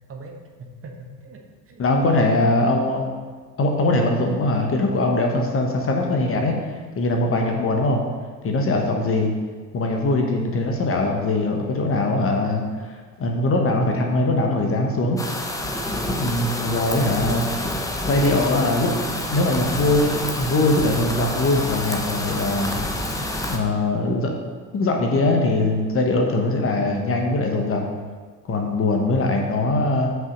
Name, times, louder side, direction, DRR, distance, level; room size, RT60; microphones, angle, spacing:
voice 1, 0.1-1.8 3.9-4.0 7.4-7.8 11.9-12.4, right 2 dB, 25° right, 2 dB, 1.2 m, -42 dB
voice 2, 1.8-3.1 3.6-6.6 7.0-8.0 8.4-9.3 9.7-15.2 16.2-17.5 18.0-22.7 23.5-24.3 24.7-27.8 28.5-30.1, left 2 dB, 25° left, 2 dB, 1.1 m, -21 dB
sound 1, 15.2-23.6, left 1 dB, 5° left, 0.7 m, -28 dB
5.8 x 5.5 x 5.2 m, 1.5 s
figure-of-eight pair, 70°, 50 cm